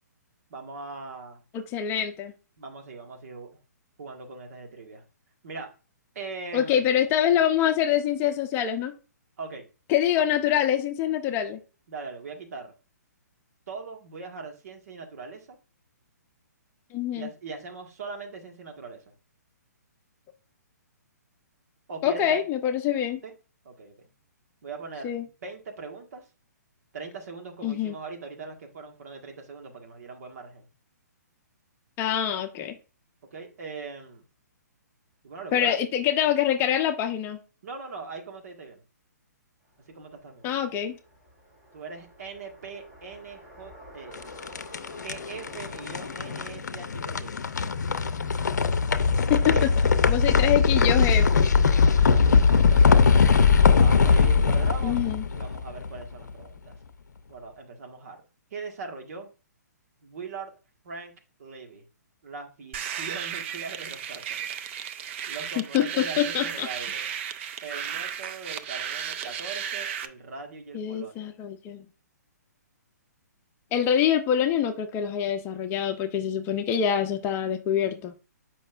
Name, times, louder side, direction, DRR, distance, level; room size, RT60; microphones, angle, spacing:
voice 1, 0.5-1.4 2.6-3.5 4.0-5.0 5.4-5.7 6.1-6.9 9.4-9.7 10.2-10.3 11.9-12.7 13.7-15.6 17.1-19.0 21.9-22.4 23.2-23.3 23.6-24.1 24.6-26.2 26.9-30.7 33.3-34.2 35.2-35.8 37.6-38.8 39.9-40.5 41.7-44.3 45.0-47.3 47.6-47.8 49.4-49.7 50.3-50.5 51.8-53.4 53.8-55.0 55.3-56.8 57.3-58.2 58.5-59.3 60.0-60.5 60.8-61.1 61.4-61.8 62.2-64.6 64.9-67.1 67.6-71.3, right 4 dB, 60° right, 3 dB, 1.6 m, -40 dB
voice 2, 1.5-2.3 6.5-8.9 9.9-11.6 16.9-17.3 22.0-23.2 25.0-25.2 27.6-27.9 32.0-32.8 35.5-37.4 40.4-41.0 49.3-49.4 50.1-51.5 54.8-55.2 65.6-66.7 70.7-71.9 73.7-78.1, left 9 dB, 25° left, 7 dB, 0.8 m, -25 dB
sound 1, 39.7-46.5, equal, 20° right, 3.9 m, -49 dB
sound 2, 44.1-56.2, left 5 dB, 75° left, 0.6 m, -21 dB
sound 3, 62.7-70.1, right 9 dB, 40° right, 0.6 m, -34 dB
7.6 x 5.4 x 2.5 m, 0.33 s
figure-of-eight pair, 130°, 9 cm